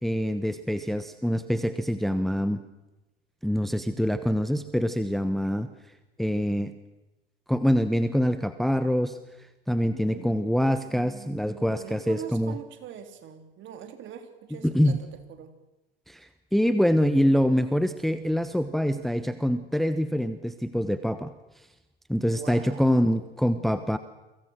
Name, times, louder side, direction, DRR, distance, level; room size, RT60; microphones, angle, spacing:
voice 1, 0.0-2.6 3.4-5.7 6.2-6.7 7.5-9.2 9.7-12.6 14.6-15.0 16.1-21.3 22.1-24.0, equal, ahead, 11 dB, 1.1 m, -25 dB
voice 2, 10.0-15.5 22.3-23.1, right 9 dB, 40° right, 7 dB, 3.7 m, -44 dB
30.0 x 24.0 x 6.3 m, 1.0 s
figure-of-eight pair, 80°, 30 cm